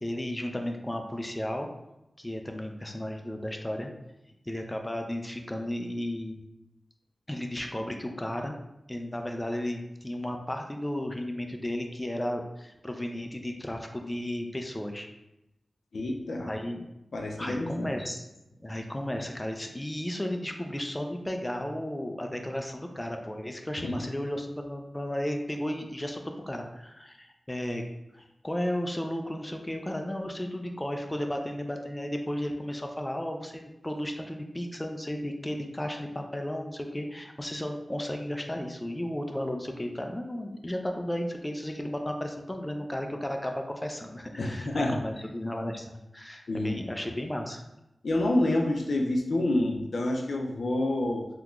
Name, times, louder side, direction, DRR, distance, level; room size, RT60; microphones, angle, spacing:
voice 1, 0.0-1.7 2.2-3.9 4.5-6.4 7.3-8.6 8.9-15.1 16.4-16.8 17.4-18.3 18.6-47.6, left 1 dB, 20° left, 3 dB, 0.4 m, -34 dB
voice 2, 15.9-16.5 17.1-18.0 23.8-24.0 44.4-45.0 46.5-46.9 48.0-51.3, left 1 dB, 75° left, 2 dB, 0.4 m, -28 dB
3.6 x 2.9 x 2.4 m, 0.93 s
cardioid pair, 50°, 0 cm